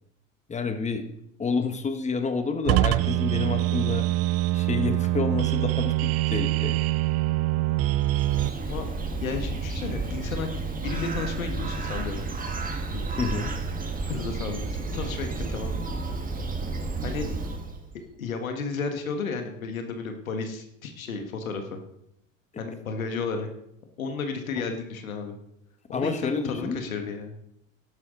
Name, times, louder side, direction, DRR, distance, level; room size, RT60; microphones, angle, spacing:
voice 1, 0.5-1.0 1.4-4.1 4.5-6.8 13.2-13.5 25.9-26.8, left 4 dB, 15° left, 7 dB, 1.3 m, -29 dB
sound 1, 2.7-8.5, right 16 dB, 40° right, 0.5 m, -24 dB
Bird, 7.9-17.9, right 3 dB, 20° right, 1.7 m, -32 dB
voice 2, 9.2-10.5 10.8-12.3 12.9-13.0 14.1-14.7 14.9-15.8 17.0-17.2 18.2-21.8 22.6-23.5 24.0-25.4 25.9-27.4, left 4 dB, 90° left, 5 dB, 1.7 m, -33 dB
12.5 x 11.0 x 3.9 m, 0.78 s
hypercardioid pair, 85°, 40 cm